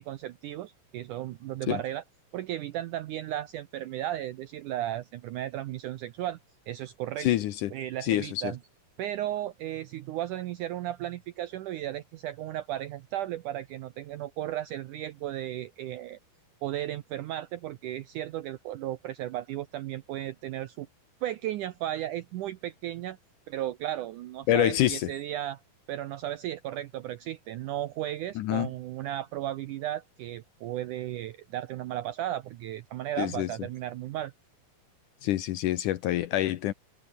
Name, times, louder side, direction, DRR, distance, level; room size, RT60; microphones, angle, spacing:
voice 1, 0.0-2.0 2.3-6.4 6.7-7.3 7.7-8.6 9.0-16.2 16.6-20.9 21.2-23.2 23.5-25.6 25.9-34.3, right 13 dB, 75° right, 1.9 m, -35 dB
voice 2, 7.2-7.7 8.0-8.5 24.5-25.1 28.4-28.7 33.2-33.5 35.2-36.7, left 13 dB, 75° left, 2.0 m, -26 dB
omnidirectional pair, 4.5 m